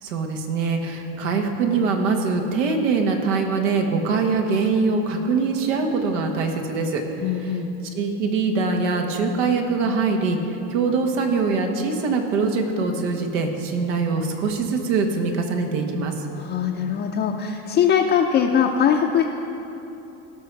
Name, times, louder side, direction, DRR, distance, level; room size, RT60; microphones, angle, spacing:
voice 1, 0.0-7.6 7.9-16.3, right 4 dB, 80° right, 3 dB, 1.5 m, -23 dB
voice 2, 7.2-7.7 16.4-19.2, left 8 dB, 30° left, 0 dB, 0.6 m, -21 dB
17.5 x 6.1 x 4.7 m, 3.0 s
supercardioid pair, 130°, 37 cm